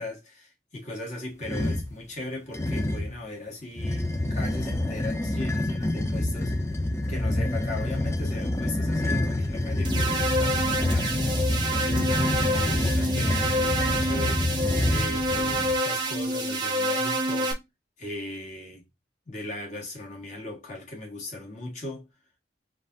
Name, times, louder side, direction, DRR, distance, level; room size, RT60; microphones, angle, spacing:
voice 1, 0.0-6.6 7.1-14.5 14.9-17.5 18.0-18.8 19.3-22.1, left 1 dB, 40° left, 1.7 m, -38 dB
sound 1, 1.4-1.9 2.5-3.2 3.8-15.8, left 1 dB, 15° left, 0.4 m, -27 dB
sound 2, 9.8-17.5, right 1 dB, 25° right, 0.8 m, -27 dB
3.8 x 2.6 x 3.9 m
head